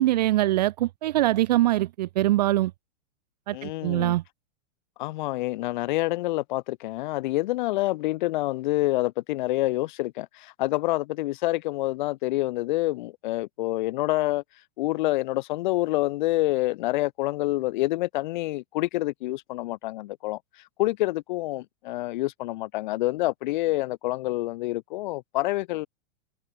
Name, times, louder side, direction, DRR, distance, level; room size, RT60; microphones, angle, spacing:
voice 1, 0.0-2.7 3.5-4.2, right 15 dB, 40° right, 0.6 m, -23 dB
voice 2, 3.5-4.1 5.0-14.4 14.8-20.4 20.8-25.9, left 18 dB, 45° left, 4.0 m, -27 dB
supercardioid pair, 175°, 34 cm